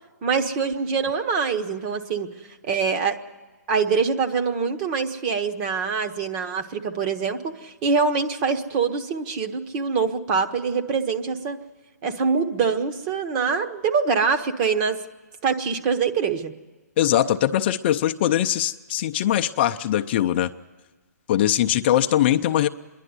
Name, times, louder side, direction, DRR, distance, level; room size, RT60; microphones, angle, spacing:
voice 1, 0.2-2.3 2.6-3.2 3.7-11.6 12.0-15.0 15.4-16.5, right 5 dB, 30° right, 6 dB, 1.2 m, -24 dB
voice 2, 17.0-20.5 21.3-22.7, left 12 dB, 35° left, 6 dB, 0.5 m, -21 dB
26.0 x 11.0 x 9.7 m, 1.3 s
hypercardioid pair, 150°, 9 cm